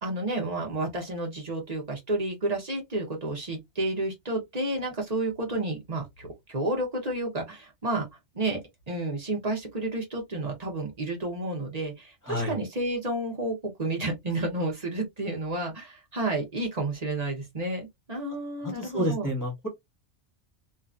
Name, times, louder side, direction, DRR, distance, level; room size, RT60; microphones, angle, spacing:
voice 1, 0.0-8.1 8.3-8.6 8.9-19.3, right 2 dB, 35° right, 0.9 m, -31 dB
voice 2, 12.3-12.6 18.6-19.7, equal, 15° left, 1.2 m, -29 dB
2.8 x 2.5 x 2.4 m
omnidirectional pair, 1.3 m